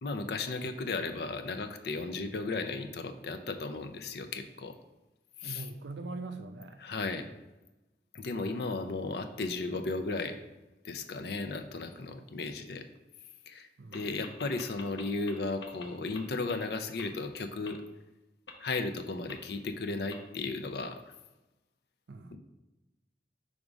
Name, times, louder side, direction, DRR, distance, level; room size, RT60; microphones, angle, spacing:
voice 1, 0.0-4.8 5.4-5.7 6.8-7.3 8.1-10.4 10.8-12.9 13.5-17.8 18.6-21.1 22.3-22.4, left 3 dB, 65° left, 8 dB, 0.5 m, -35 dB
voice 2, 5.4-6.8 8.3-8.5 13.8-14.1 22.1-22.4, right 3 dB, 80° right, 8 dB, 0.5 m, -42 dB
sound 1, 13.9-14.0 14.2-15.3 15.6-15.8 16.1-16.2 16.5-16.6 17.0-17.1 17.6-17.7 18.5-18.6 19.3-19.4 20.1-20.2, left 5 dB, 90° left, 0.8 m, -44 dB
5.1 x 3.6 x 5.0 m, 1.0 s
head